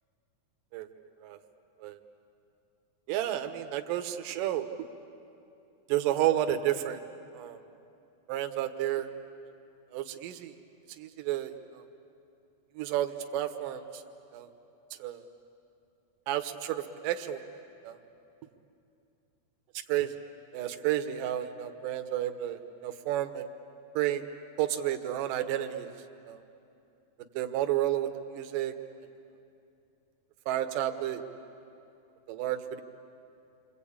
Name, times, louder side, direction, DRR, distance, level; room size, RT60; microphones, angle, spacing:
voice 1, 3.1-4.7 5.9-7.0 7.3-7.6 8.3-9.1 9.9-10.6 10.9-11.9 12.8-14.0 14.3-14.5 15.0-15.3 16.3-17.4 17.8-18.0 19.9-20.1 20.5-23.5 23.9-24.2 24.6-25.9 26.3-26.4 27.4-28.7 30.5-31.2 32.3-32.8, right 12 dB, 70° right, 7 dB, 2.5 m, -31 dB
28.0 x 24.5 x 8.7 m, 2.7 s
omnidirectional pair, 4.2 m